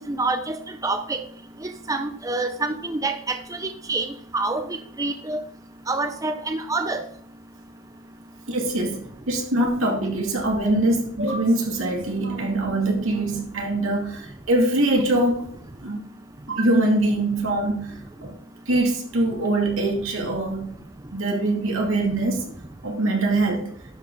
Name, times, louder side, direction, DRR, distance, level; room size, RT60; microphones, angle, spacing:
voice 1, 0.1-1.2 1.6-5.4 5.9-7.0, right 3 dB, 15° right, 7 dB, 0.5 m, -27 dB
voice 2, 8.5-9.0 9.3-15.5 15.8-16.1 16.5-18.4 18.7-20.7 21.1-22.5 22.8-23.7, right 2 dB, 80° right, 1 dB, 2.4 m, -23 dB
11.5 x 5.4 x 3.9 m, 0.63 s
head